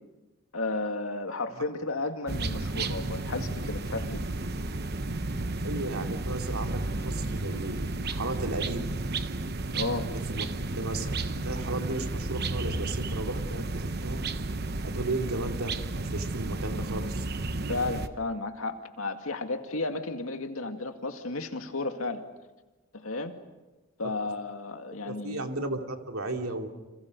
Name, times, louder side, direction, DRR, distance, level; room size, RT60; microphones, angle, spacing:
voice 1, 0.5-4.2 9.7-10.1 17.7-22.2 22.9-23.4 24.0-25.5, left 3 dB, 80° left, 5 dB, 2.1 m, -33 dB
sound 1, 2.3-18.1, right 2 dB, 45° right, 1.0 m, -32 dB
voice 2, 5.6-9.0 10.1-10.5 10.8-14.2 14.8-17.2 24.0-24.1 25.0-26.7, right 2 dB, 85° right, 3 dB, 2.7 m, -35 dB
30.0 x 27.0 x 5.4 m, 1.2 s
head